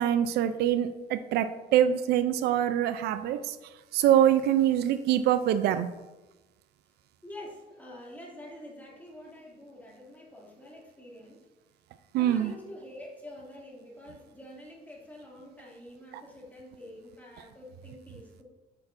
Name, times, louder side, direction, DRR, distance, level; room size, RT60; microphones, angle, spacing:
voice 1, 0.0-3.6 3.9-5.9 12.1-12.5, right 10 dB, 75° right, 12 dB, 0.4 m, -24 dB
voice 2, 7.2-11.5 12.1-18.4, left 1 dB, 10° left, -4 dB, 2.2 m, -47 dB
8.3 x 6.0 x 2.5 m, 1.1 s
cardioid pair, 110°, 17 cm